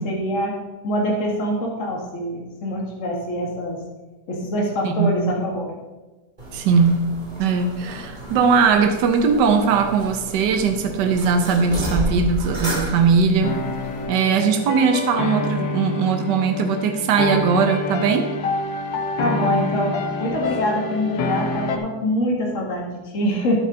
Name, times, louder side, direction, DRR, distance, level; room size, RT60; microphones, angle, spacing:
voice 1, 0.0-0.5 0.8-3.8 4.3-5.7 19.2-23.6, equal, 45° left, -2 dB, 2.1 m, -24 dB
sound 1, 6.4-14.0, equal, 25° right, 2.5 m, -32 dB
voice 2, 6.5-7.0 7.4-13.6 14.1-18.3, right 5 dB, 75° right, 6 dB, 1.5 m, -19 dB
sound 2, 13.4-21.8, left 3 dB, 90° left, 1.7 m, -26 dB
11.0 x 9.1 x 3.8 m, 1.2 s
omnidirectional pair, 1.9 m